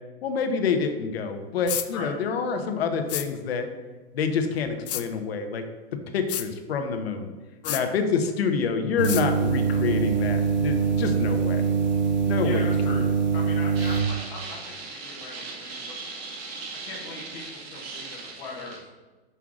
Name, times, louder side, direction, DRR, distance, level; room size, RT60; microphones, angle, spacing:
voice 1, 0.2-3.7 4.1-5.6 6.1-7.3 7.7-11.7 12.3-13.1, left 5 dB, 80° left, 6 dB, 1.0 m, -27 dB
sound 1, 1.7-1.9 3.1-3.3 4.9-5.0 6.3-6.5 7.6-7.8 9.0-9.2, left 12 dB, 60° left, 0.5 m, -29 dB
sound 2, 9.0-14.0, right 5 dB, 45° right, 0.6 m, -23 dB
voice 2, 12.4-16.0 16.8-18.8, left 3 dB, 10° left, -3 dB, 0.4 m, -39 dB
sound 3, 13.7-18.8, right 3 dB, 75° right, 1.8 m, -38 dB
6.1 x 5.7 x 3.7 m, 1.3 s
supercardioid pair, 175°, 30 cm